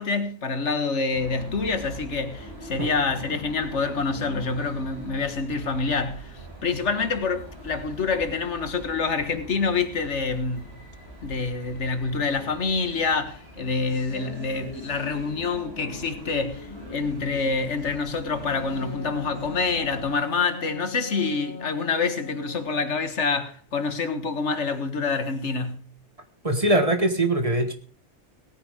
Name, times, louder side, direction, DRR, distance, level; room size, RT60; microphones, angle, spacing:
voice 1, 0.0-10.8 11.2-25.9, left 4 dB, 80° left, 1.8 m, -27 dB
sound 1, 1.1-20.1, equal, 60° right, 6.6 m, -42 dB
Wind instrument woodwind instrument, 18.5-23.1, left 3 dB, 55° left, 1.3 m, -38 dB
voice 2, 26.4-27.7, right 1 dB, 30° right, 1.7 m, -22 dB
18.5 x 9.3 x 5.0 m
omnidirectional pair, 1.2 m